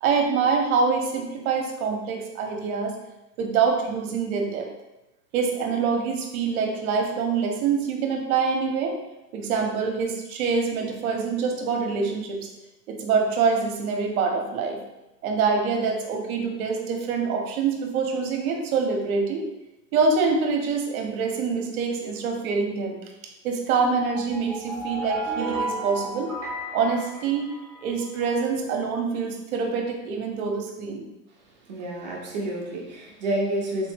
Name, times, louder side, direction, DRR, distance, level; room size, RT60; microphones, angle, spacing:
voice 1, 0.0-3.0 3.4-4.7 5.3-9.0 9.3-12.4 12.9-14.8 15.2-19.5 19.9-23.0 23.4-26.3 26.7-27.5 27.8-31.1, right 5 dB, 55° right, 3 dB, 0.7 m, -25 dB
sound 1, 24.1-28.1, right 2 dB, 5° right, 0.8 m, -33 dB
voice 2, 31.6-33.9, right 1 dB, 30° right, -3 dB, 0.4 m, -29 dB
3.4 x 2.0 x 3.3 m, 0.97 s
hypercardioid pair, 145°, 50 cm